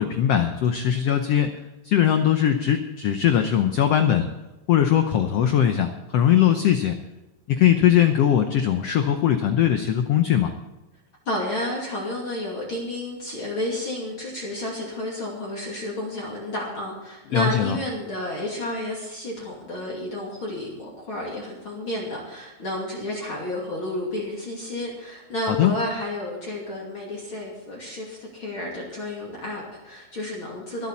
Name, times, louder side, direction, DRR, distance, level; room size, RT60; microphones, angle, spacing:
voice 1, 0.0-1.5 1.8-4.3 4.7-7.0 7.5-10.5 17.3-17.8 25.5-25.7, left 10 dB, 85° left, 7 dB, 1.4 m, -20 dB
voice 2, 11.3-30.9, left 1 dB, 40° left, -4 dB, 3.1 m, -31 dB
25.5 x 8.6 x 4.2 m, 1.0 s
omnidirectional pair, 4.0 m